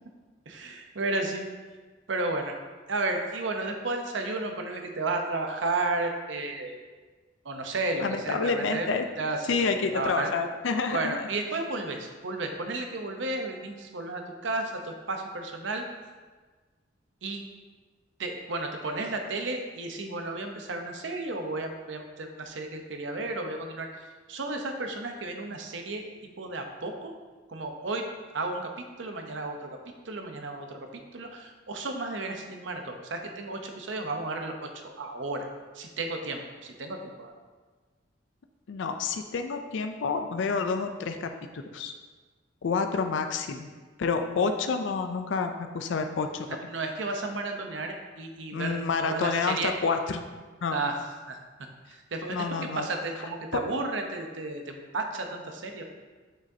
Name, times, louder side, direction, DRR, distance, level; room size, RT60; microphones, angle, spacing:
voice 1, 0.5-1.4 2.1-2.6 2.9-6.8 7.4-8.9 9.2-10.3 10.9-15.8 17.2-17.4 18.2-23.9 24.3-26.0 26.4-27.1 27.5-28.0 28.3-28.6 29.0-29.8 30.1-30.8 31.1-34.7 35.0-35.5 35.7-37.3 46.7-49.7 50.7-51.4 52.1-52.4 52.8-55.8, right 2 dB, 80° right, 4 dB, 0.8 m, -33 dB
voice 2, 8.0-9.1 9.5-11.3 38.7-41.3 41.7-41.9 42.6-43.7 44.0-46.5 48.5-50.2 50.6-50.8 52.3-52.9 53.5-53.6, left 4 dB, 75° left, 6 dB, 0.4 m, -28 dB
6.5 x 6.1 x 2.7 m, 1.4 s
head